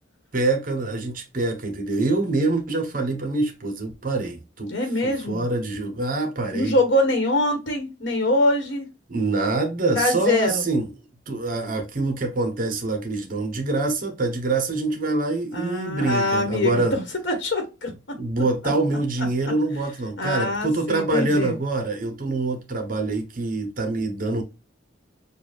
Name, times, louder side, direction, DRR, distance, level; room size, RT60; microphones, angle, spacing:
voice 1, 0.3-4.7 5.0-6.8 9.1-10.9 11.3-16.9 18.2-24.4, right 2 dB, 50° right, 0.9 m, -25 dB
voice 2, 4.7-5.4 6.5-8.9 9.9-10.6 15.5-18.2 19.4-19.5 20.2-21.6, left 1 dB, 90° left, 1.4 m, -24 dB
6.8 x 2.4 x 2.3 m
head